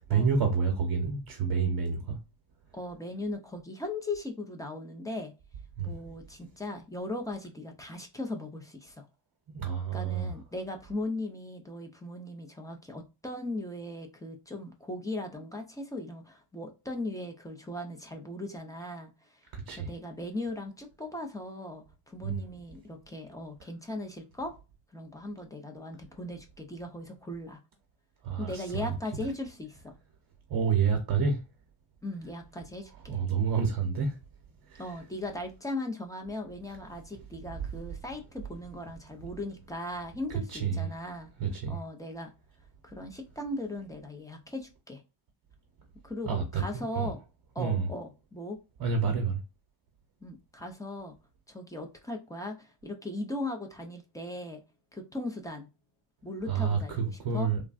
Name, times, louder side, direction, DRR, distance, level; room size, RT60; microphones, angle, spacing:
voice 1, 0.1-2.2 5.8-5.9 9.5-10.3 19.5-19.9 22.2-22.4 28.2-28.9 30.5-31.4 33.1-34.2 34.7-34.8 40.5-40.9 41.4-41.8 46.2-47.1 47.6-47.9 48.8-49.4 56.5-57.6, right 5 dB, 50° right, 0.8 m, -28 dB
voice 2, 2.7-5.3 5.8-9.1 9.9-19.4 19.7-24.5 24.9-27.6 28.4-29.9 32.0-33.2 34.8-41.3 41.7-42.3 42.8-45.0 46.0-47.2 47.6-48.6 50.2-51.1 51.5-54.6 54.9-55.7 56.2-57.5, left 1 dB, 10° left, 0.3 m, -38 dB
3.4 x 2.1 x 2.3 m
cardioid pair, 150°, 50 cm